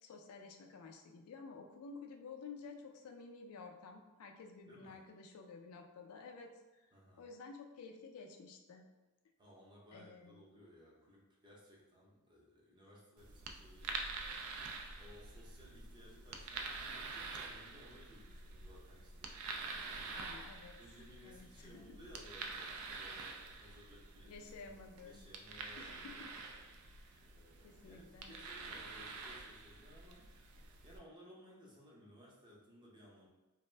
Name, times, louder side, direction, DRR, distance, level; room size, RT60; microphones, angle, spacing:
voice 1, 0.0-6.9 7.2-8.8 9.9-10.4 20.1-20.8 21.2-22.0 24.3-25.3 25.8-26.3 27.0-27.2 27.6-28.4, left 4 dB, 70° left, 3 dB, 0.3 m, -52 dB
voice 2, 4.7-5.0 6.9-7.2 9.4-14.2 14.9-19.4 19.8-20.2 20.8-24.7 25.0-26.3 27.3-30.3 30.8-33.3, equal, 20° right, -5 dB, 0.6 m, -60 dB
sound 1, 13.2-31.0, right 4 dB, 70° right, 0.3 m, -47 dB
2.5 x 2.1 x 3.2 m, 1.1 s
head